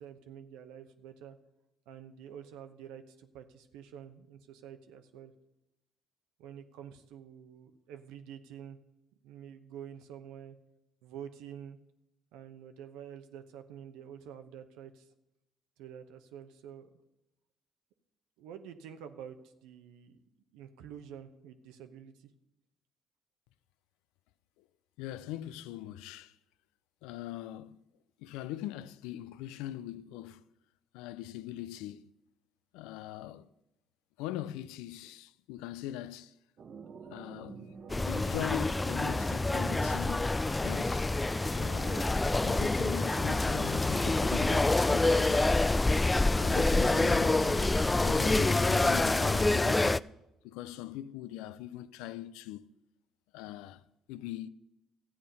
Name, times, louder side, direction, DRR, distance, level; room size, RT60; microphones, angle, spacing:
voice 1, 0.0-1.4 1.9-5.3 6.4-8.8 9.2-10.6 11.0-11.8 12.3-15.1 15.8-16.9 18.4-20.2 20.5-22.3, right 9 dB, 80° right, 0.9 m, -48 dB
voice 2, 25.0-26.4 27.0-27.8 28.2-30.4 30.9-32.1 32.7-33.5 34.2-36.3 37.1-40.3 40.6-41.1 41.6-45.7 46.4-47.5 47.9-50.1 50.4-52.7 53.3-53.8 54.1-54.5, left 13 dB, 80° left, 0.4 m, -41 dB
sound 1, 36.6-48.4, right 5 dB, 50° right, 0.9 m, -47 dB
sound 2, 37.9-50.0, left 2 dB, 20° left, 0.3 m, -27 dB
13.0 x 8.7 x 5.4 m
hypercardioid pair, 55°, 0 cm